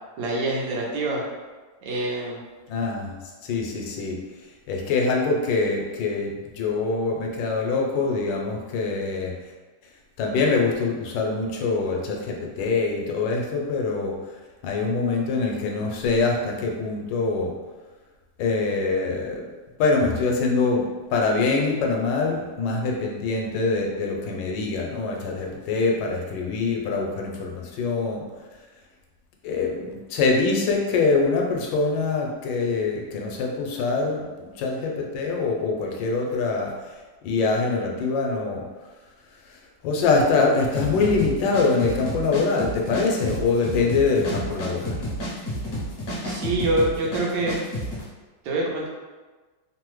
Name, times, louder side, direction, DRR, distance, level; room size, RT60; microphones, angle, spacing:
voice 1, 0.2-1.2 1.8-2.4 46.2-47.5 48.4-48.9, right 2 dB, 85° right, -3 dB, 1.4 m, -25 dB
voice 2, 2.7-3.2 3.4-4.2 4.7-9.4 10.2-14.2 14.6-17.5 18.4-19.5 19.8-28.3 29.4-38.7 39.5-45.0, left 4 dB, 80° left, 0 dB, 1.2 m, -24 dB
sound 1, 40.7-48.0, equal, 65° left, 0.8 m, -30 dB
3.4 x 2.0 x 3.0 m, 1.3 s
omnidirectional pair, 2.0 m